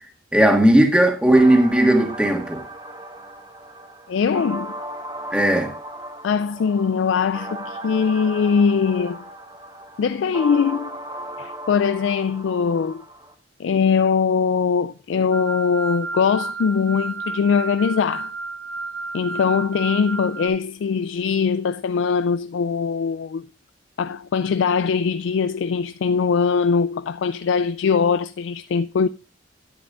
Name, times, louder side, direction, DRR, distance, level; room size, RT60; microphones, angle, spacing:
voice 1, 0.3-2.6 5.3-5.7, right 1 dB, 5° right, 1.5 m, -16 dB
sound 1, 1.3-13.3, right 1 dB, 25° right, 1.2 m, -36 dB
voice 2, 4.1-4.7 6.2-9.2 10.0-10.9 11.4-13.0 13.6-18.3 19.1-23.5 24.0-29.1, left 6 dB, 75° left, 0.3 m, -21 dB
sound 2, 15.3-20.5, right 3 dB, 50° right, 1.0 m, -32 dB
10.5 x 10.0 x 2.4 m
head